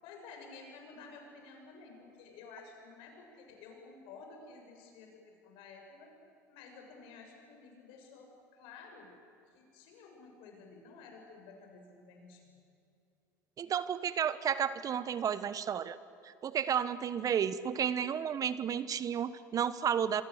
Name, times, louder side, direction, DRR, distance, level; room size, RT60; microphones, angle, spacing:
voice 1, 0.0-6.1 6.5-9.1 9.5-12.6, left 4 dB, 60° left, 2 dB, 7.1 m, -52 dB
voice 2, 13.6-16.0 16.2-20.2, right 8 dB, 40° right, 15 dB, 1.1 m, -32 dB
26.5 x 24.5 x 8.0 m, 2.6 s
hypercardioid pair, 75°, 10 cm